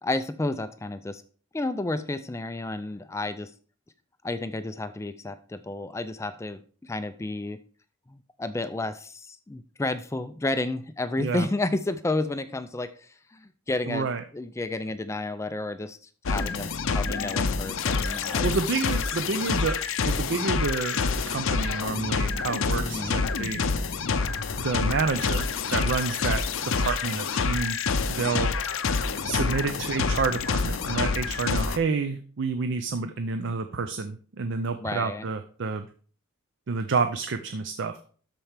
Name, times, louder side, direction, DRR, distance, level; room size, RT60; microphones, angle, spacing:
voice 1, 0.0-1.2 1.5-3.5 4.2-7.6 8.1-18.6 22.7-23.3 34.8-35.3, left 2 dB, 15° left, 11 dB, 0.3 m, -31 dB
voice 2, 13.9-14.2 18.4-19.8 20.1-23.6 24.6-27.8 28.1-28.5 29.2-35.9 36.7-38.0, right 4 dB, 55° right, 9 dB, 0.5 m, -29 dB
sound 1, 16.3-31.8, left 4 dB, 60° left, 0.6 m, -27 dB
13.0 x 4.5 x 3.4 m, 0.42 s
head